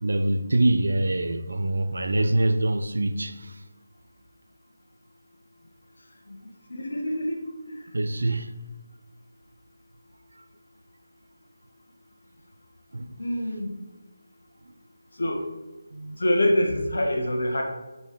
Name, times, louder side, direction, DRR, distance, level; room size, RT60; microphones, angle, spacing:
voice 1, 0.0-3.5 7.9-8.5 12.9-13.0 15.9-16.2, right 1 dB, 70° right, 0.7 m, -24 dB
voice 2, 6.7-7.4 7.7-7.8 13.2-13.8 15.2-15.4 16.2-17.6, left 1 dB, 70° left, 1.6 m, -25 dB
6.9 x 4.6 x 4.8 m
figure-of-eight pair, 155°, 0 cm